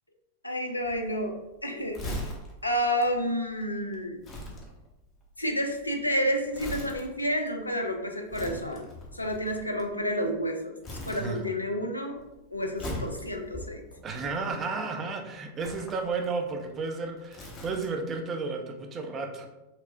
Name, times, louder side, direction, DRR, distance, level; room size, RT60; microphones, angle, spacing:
voice 1, 0.4-1.3 1.6-2.0 2.6-4.2 5.4-8.9 9.1-10.8 11.1-12.2 12.5-13.8, equal, 85° left, 3 dB, 0.4 m, -30 dB
Crumpling crinkling, 0.8-10.4 10.8-11.8 12.1-14.8 15.5-18.1 18.4-18.6, left 1 dB, 30° left, 0.7 m, -41 dB
voice 2, 11.0-11.5 14.0-19.5, right 4 dB, 25° right, 4 dB, 0.5 m, -33 dB
4.3 x 2.0 x 2.6 m, 0.98 s
figure-of-eight pair, 90°, 0 cm